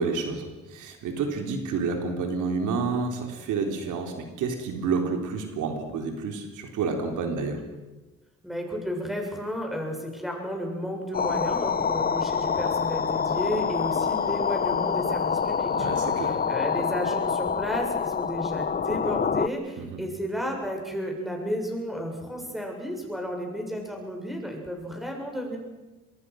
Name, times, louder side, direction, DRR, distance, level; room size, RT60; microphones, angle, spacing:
voice 1, 0.0-7.6 15.7-16.4 19.8-20.0, right 4 dB, 85° right, 4 dB, 3.7 m, -29 dB
voice 2, 8.4-25.6, equal, ahead, 1 dB, 7.2 m, -32 dB
sound 1, 11.1-19.5, left 6 dB, 30° left, 0.9 m, -26 dB
25.5 x 22.0 x 6.4 m, 1.1 s
cardioid pair, 90°, 30 cm